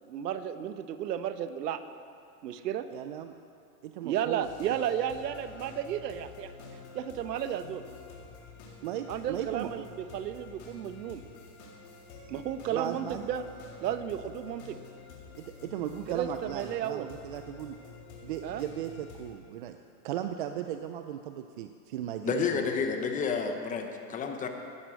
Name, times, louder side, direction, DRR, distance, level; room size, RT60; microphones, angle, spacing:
voice 1, 0.0-1.8 2.4-2.9 4.0-6.5 6.9-7.8 9.1-11.2 12.3-13.4 13.8-14.8 16.1-17.1 18.4-18.6, right 9 dB, 80° right, 11 dB, 1.1 m, -33 dB
voice 2, 2.9-3.3 3.8-4.5 8.8-9.7 12.7-13.3 15.4-17.8 18.2-19.8 20.0-22.7, right 11 dB, 35° right, 7 dB, 0.4 m, -36 dB
sound 1, 4.4-19.3, left 4 dB, 60° left, 4.0 m, -49 dB
voice 3, 22.2-24.5, left 6 dB, 15° left, 5 dB, 0.9 m, -30 dB
16.0 x 11.0 x 6.3 m, 2.5 s
supercardioid pair, 150°, 48 cm